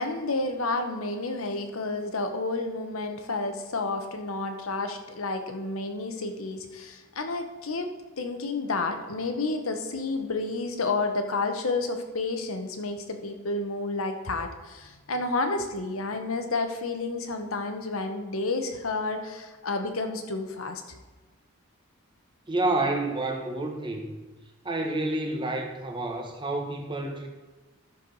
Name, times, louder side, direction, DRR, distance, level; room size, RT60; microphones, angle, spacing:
voice 1, 0.0-7.9 8.2-20.8, left 3 dB, 75° left, 6 dB, 1.0 m, -30 dB
voice 2, 22.5-24.2 24.6-27.3, right 2 dB, 20° right, 2 dB, 1.1 m, -29 dB
13.0 x 6.5 x 4.0 m, 1.2 s
head